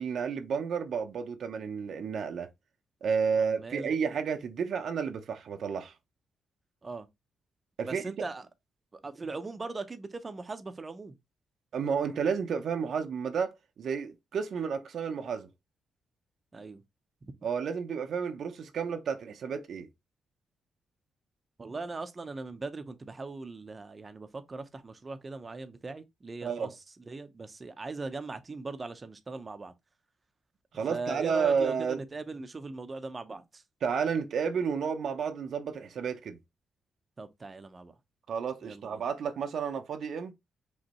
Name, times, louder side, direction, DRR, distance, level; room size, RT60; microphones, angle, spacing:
voice 1, 0.0-2.5 3.0-5.9 7.8-8.1 11.7-15.5 17.4-19.9 26.4-26.7 30.7-32.0 33.8-36.4 38.3-40.3, right 6 dB, 65° right, 0.8 m, -31 dB
voice 2, 3.3-3.9 6.8-7.1 7.9-8.5 9.0-11.1 16.5-16.8 21.6-29.7 30.9-33.6 37.2-37.9 38.6-39.0, right 3 dB, 30° right, 0.8 m, -40 dB
5.3 x 3.2 x 3.0 m
cardioid pair, 95°, 0 cm